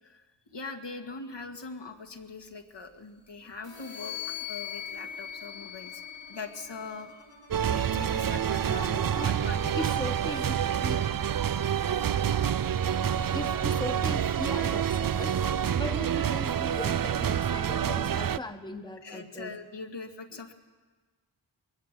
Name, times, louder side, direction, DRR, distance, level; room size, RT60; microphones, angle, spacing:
voice 1, 0.1-6.0 6.3-7.2 7.7-9.9 19.0-20.5, left 4 dB, 65° left, 4 dB, 2.1 m, -42 dB
sound 1, 3.6-13.2, left 1 dB, 90° left, 5.5 m, -54 dB
sound 2, 3.7-7.3 8.1-9.7, left 10 dB, 45° left, 2.3 m, -42 dB
sound 3, 7.5-18.4, right 9 dB, 50° right, 0.6 m, -27 dB
voice 2, 8.7-9.3 9.7-11.1 13.3-15.4 15.7-19.5, left 1 dB, 10° left, 7 dB, 1.4 m, -38 dB
21.5 x 17.5 x 7.6 m, 1.4 s
cardioid pair, 50°, 46 cm